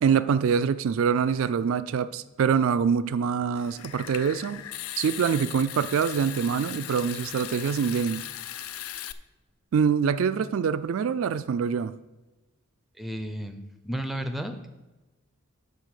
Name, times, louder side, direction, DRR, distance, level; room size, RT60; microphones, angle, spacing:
voice 1, 0.0-4.6 5.0-8.2 9.7-11.9, right 6 dB, 70° right, 0.3 m, -25 dB
Water tap faucet / Sink (filling or washing) / Trickle dribble, 3.6-9.1, left 12 dB, 75° left, 0.4 m, -38 dB
voice 2, 13.0-14.7, equal, ahead, 0.6 m, -33 dB
10.5 x 4.1 x 6.4 m
head